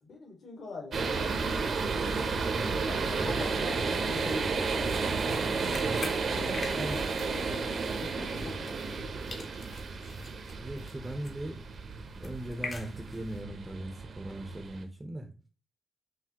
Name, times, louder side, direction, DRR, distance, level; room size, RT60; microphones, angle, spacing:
voice 1, 0.0-2.3 2.9-4.9 5.2-5.9 6.4-7.7 8.0-9.5, left 4 dB, 65° left, 1.9 m, -45 dB
sound 1, 0.9-14.8, right 4 dB, 55° right, 0.8 m, -32 dB
sound 2, 4.9-9.0 9.3-13.4, left 3 dB, 40° left, 0.9 m, -45 dB
voice 2, 6.3-7.0 10.6-11.6 12.2-15.3, right 1 dB, 15° right, 0.7 m, -39 dB
5.8 x 2.7 x 2.9 m
wide cardioid pair, 155°, 0 cm